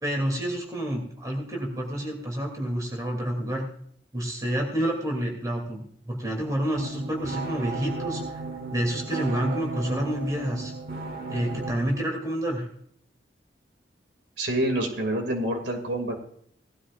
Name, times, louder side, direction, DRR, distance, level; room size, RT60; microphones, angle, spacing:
voice 1, 0.0-3.7 4.1-8.2 8.7-10.7 11.3-12.7, right 1 dB, 20° right, 1 dB, 2.7 m, -28 dB
sound 1, 6.7-11.7, right 3 dB, 55° right, 1.3 m, -35 dB
voice 2, 14.4-16.2, right 1 dB, 80° right, 4 dB, 2.4 m, -27 dB
18.5 x 12.5 x 2.5 m, 0.64 s
head